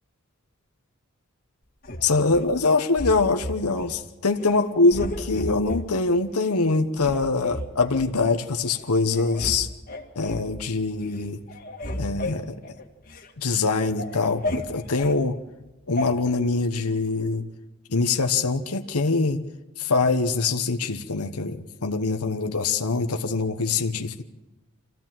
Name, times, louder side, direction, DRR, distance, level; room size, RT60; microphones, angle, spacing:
sound 1, 1.8-2.5 3.0-3.9 4.3-4.6 4.9-5.8 6.4-6.5 7.0-8.1 8.7-8.8 9.1-9.6 9.9-10.5 10.9-11.2 11.5-13.3 13.7-15.2 16.0-16.1, left 1 dB, 40° left, 1.9 m, -33 dB
voice 1, 2.0-9.7 10.1-11.4 12.0-12.5 13.4-15.4 15.9-17.5 17.9-19.4 19.8-24.3, left 3 dB, 85° left, 6 dB, 1.1 m, -24 dB
26.0 x 15.5 x 7.6 m, 1.1 s
head